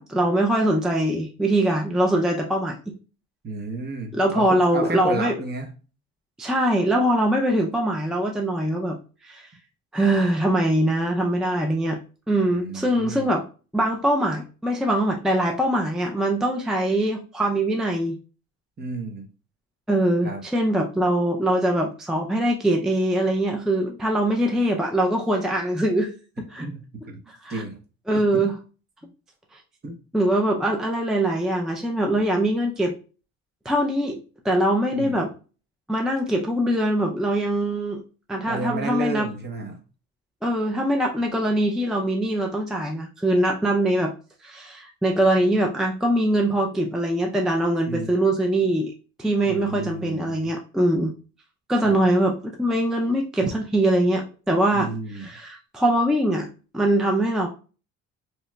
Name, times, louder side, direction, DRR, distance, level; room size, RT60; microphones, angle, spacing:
voice 1, 0.0-2.9 4.1-5.3 6.4-9.0 9.2-9.5 9.9-12.0 12.3-13.5 13.7-18.2 19.9-26.1 26.5-26.6 27.4-27.6 28.1-28.6 29.5-29.6 30.1-32.9 33.7-35.3 35.9-38.0 38.3-39.3 40.4-44.1 44.4-48.9 49.2-51.1 51.7-56.5 56.7-57.5, right 1 dB, ahead, 1 dB, 0.4 m, -22 dB
voice 2, 3.4-5.7 12.5-13.3 18.8-19.3 20.2-20.4 26.6-26.7 27.1-27.2 27.5-27.8 28.1-28.5 29.8-30.0 34.9-35.2 38.5-39.8 47.9-48.1 49.5-50.5 51.8-52.0 53.4-53.5 54.7-55.3, right 2 dB, 35° right, 2 dB, 0.8 m, -32 dB
2.9 x 2.8 x 2.2 m, 0.35 s
cardioid pair, 90°, 30 cm